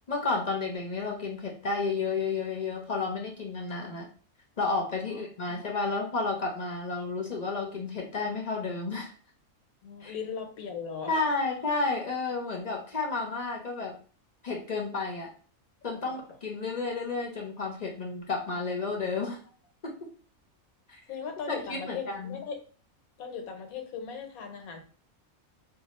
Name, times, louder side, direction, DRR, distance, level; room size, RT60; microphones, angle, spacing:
voice 1, 0.1-4.1 4.6-9.1 10.0-10.1 11.1-14.0 14.4-15.3 15.8-19.4 19.8-20.1 20.9-21.0 21.5-22.4, left 3 dB, 50° left, 0 dB, 0.5 m, -31 dB
voice 2, 5.0-5.6 9.8-11.2 16.0-16.2 21.1-22.6 23.2-24.8, left 6 dB, 85° left, 5 dB, 1.2 m, -38 dB
2.7 x 2.3 x 4.0 m, 0.41 s
omnidirectional pair, 1.5 m